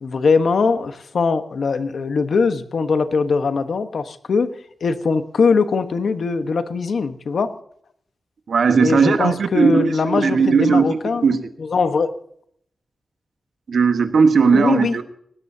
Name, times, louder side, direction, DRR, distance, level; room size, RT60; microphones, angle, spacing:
voice 1, 0.0-4.5 4.8-7.5 8.8-11.2 11.6-12.1 14.5-15.0, left 4 dB, 65° left, 9 dB, 1.1 m, -21 dB
voice 2, 8.5-11.5 13.7-15.0, right 5 dB, 75° right, 8 dB, 1.3 m, -17 dB
19.5 x 17.0 x 2.8 m, 0.66 s
wide cardioid pair, 135°, 0 cm